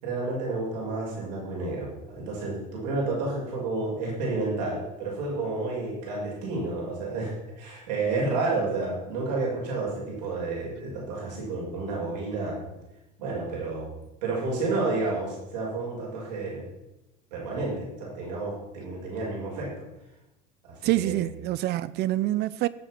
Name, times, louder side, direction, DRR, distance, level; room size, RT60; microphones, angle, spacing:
voice 1, 0.0-12.8 13.2-13.9 14.2-16.7 17.3-19.7 20.6-21.2, right 3 dB, 80° right, 6.5 m, -30 dB
voice 2, 20.8-22.7, right 15 dB, 55° right, 0.8 m, -26 dB
17.5 x 8.0 x 6.2 m
hypercardioid pair, 80°, 21 cm